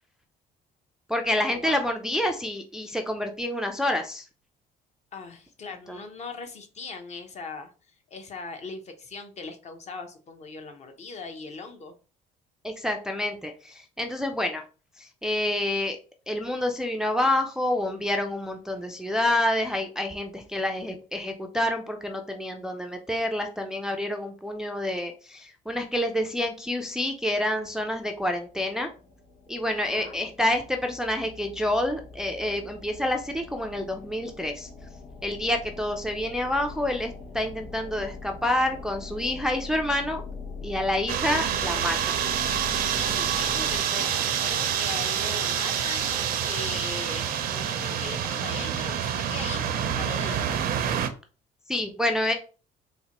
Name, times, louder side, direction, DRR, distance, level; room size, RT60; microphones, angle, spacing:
voice 1, 1.1-4.3 5.9-6.0 12.6-14.6 15.0-16.0 16.3-28.9 29.5-34.7 35.2-40.2 40.6-42.2 51.7-52.3, left 1 dB, 5° right, 4 dB, 0.4 m, -28 dB
voice 2, 5.1-7.7 8.1-11.9 29.8-30.2 42.7-50.7, left 4 dB, 40° left, 5 dB, 0.7 m, -39 dB
sound 1, 27.0-43.8, left 4 dB, 85° left, 1.2 m, -42 dB
sound 2, 41.1-51.1, right 9 dB, 60° right, 0.5 m, -27 dB
4.1 x 2.1 x 2.9 m, 0.35 s
cardioid pair, 110°, 17 cm